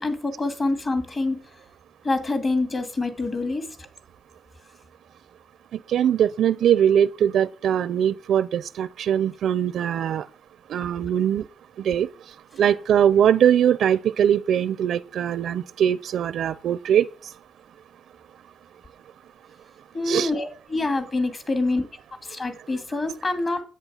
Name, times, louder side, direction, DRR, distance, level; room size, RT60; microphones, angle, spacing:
voice 1, 0.0-1.4 2.0-3.7 19.9-21.8 22.2-23.6, left 2 dB, 30° left, 2.5 m, -26 dB
voice 2, 5.7-10.3 10.7-11.5 11.8-12.1 12.6-17.3 20.0-20.3, right 9 dB, 80° right, 0.5 m, -21 dB
10.5 x 8.6 x 7.2 m
cardioid pair, 125°, 0 cm